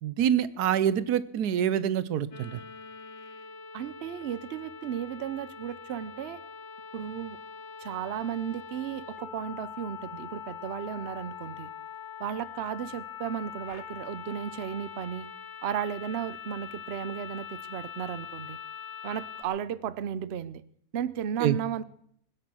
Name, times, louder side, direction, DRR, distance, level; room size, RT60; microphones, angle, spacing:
voice 1, 0.0-2.6 21.4-21.6, right 9 dB, 80° right, 16 dB, 1.3 m, -26 dB
sound 1, 2.3-19.4, left 7 dB, 45° left, 1.7 m, -43 dB
voice 2, 3.7-6.4 6.9-7.4 7.8-11.7 12.2-15.3 15.6-18.6 19.0-20.6 20.9-21.8, right 9 dB, 55° right, 16 dB, 0.8 m, -34 dB
20.5 x 9.7 x 6.3 m, 0.67 s
omnidirectional pair, 1.6 m